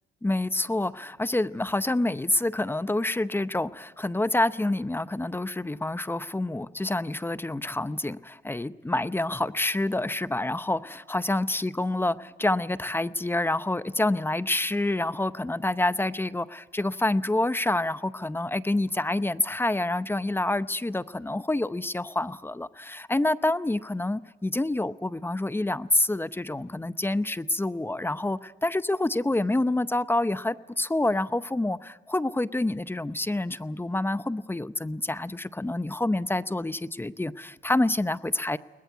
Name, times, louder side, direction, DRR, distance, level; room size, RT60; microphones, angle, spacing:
voice 1, 0.2-38.6, left 2 dB, 10° left, 15 dB, 0.7 m, -27 dB
21.5 x 20.0 x 9.3 m, 1.2 s
cardioid pair, 90°, 20 cm